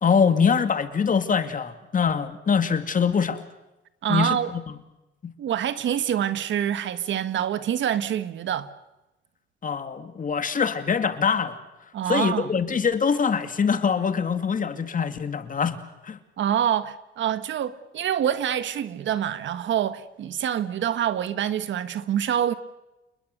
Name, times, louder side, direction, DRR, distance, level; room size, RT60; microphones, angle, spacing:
voice 1, 0.0-3.4 4.1-4.4 5.2-5.3 9.6-11.6 12.1-15.8 16.0-16.2, left 6 dB, 40° left, 2.4 m, -23 dB
voice 2, 4.0-4.5 5.4-8.7 11.9-12.5 16.4-22.5, right 10 dB, 70° right, 1.6 m, -26 dB
29.0 x 20.5 x 6.8 m
cardioid pair, 90°, 20 cm